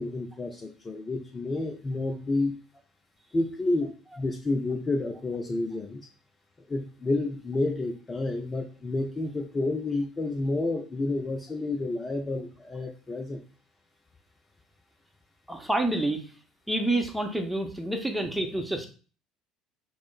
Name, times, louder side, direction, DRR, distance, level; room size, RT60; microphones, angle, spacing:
voice 1, 0.0-2.5 3.3-6.0 6.7-13.4, left 2 dB, 25° left, 4 dB, 0.5 m, -30 dB
voice 2, 15.5-16.2 16.7-18.9, right 1 dB, 5° right, 2 dB, 0.7 m, -28 dB
6.0 x 2.1 x 2.3 m, 0.37 s
figure-of-eight pair, 60°, 0 cm